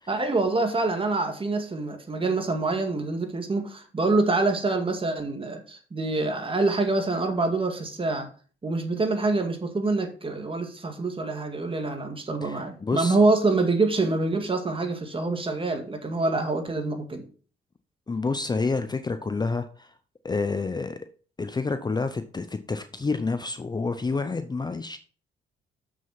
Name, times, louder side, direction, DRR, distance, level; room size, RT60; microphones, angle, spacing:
voice 1, 0.1-8.3 8.6-17.2, right 3 dB, 25° right, 2.0 m, -26 dB
voice 2, 12.4-13.2 18.1-19.9 20.2-21.0 21.4-25.0, left 4 dB, 20° left, 0.6 m, -29 dB
6.8 x 6.3 x 5.8 m
cardioid pair, 90°, 20 cm